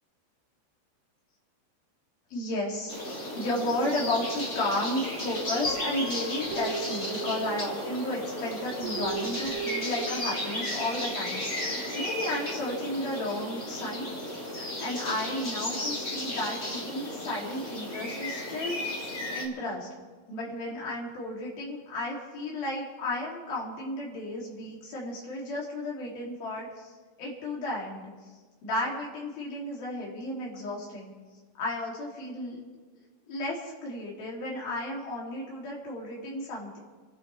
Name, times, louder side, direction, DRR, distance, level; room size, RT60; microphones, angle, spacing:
voice 1, 2.3-2.9 3.3-19.0 19.3-19.9 20.3-26.9 27.2-28.1 28.6-31.1 31.6-32.6 33.3-36.8, left 1 dB, 50° left, -4 dB, 4.7 m, -33 dB
sound 1, 2.9-19.5, left 1 dB, 35° left, 1.2 m, -34 dB
Guitar, 5.6-8.1 8.8-10.8, right 5 dB, 40° right, 6.9 m, -38 dB
28.5 x 12.5 x 3.5 m, 1.4 s
omnidirectional pair, 5.5 m